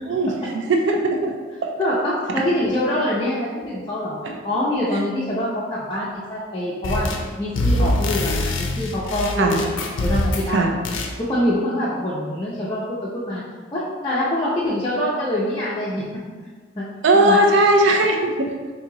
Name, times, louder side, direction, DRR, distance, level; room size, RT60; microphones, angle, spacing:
voice 1, 0.0-1.3 1.6-1.7 4.2-4.4 9.4-9.6 10.5-10.7 17.0-18.5, right 2 dB, 70° right, 2 dB, 0.4 m, -18 dB
voice 2, 1.8-4.1 4.4-7.1 7.4-9.6 10.0-10.8 11.2-13.4 13.7-16.0 16.8-16.9 17.1-17.4, left 1 dB, 25° left, -8 dB, 0.5 m, -24 dB
sound 1, 6.8-7.3 7.5-10.5 10.8-11.1, left 1 dB, 80° left, 0.4 m, -24 dB
2.9 x 2.7 x 3.7 m, 1.5 s
head